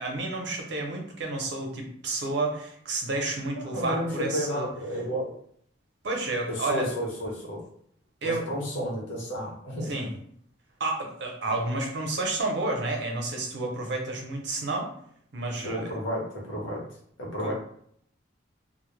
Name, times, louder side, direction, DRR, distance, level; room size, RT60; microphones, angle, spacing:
voice 1, 0.0-4.7 6.0-6.9 8.2-8.5 9.9-10.1 10.8-14.9 15.3-15.9 17.4-17.5, right 2 dB, 60° right, 1 dB, 0.5 m, -30 dB
voice 2, 3.5-5.3 6.5-7.6 8.2-9.9 15.6-16.8 17.2-17.5, equal, 75° left, -3 dB, 0.8 m, -32 dB
2.0 x 2.0 x 3.0 m, 0.65 s
head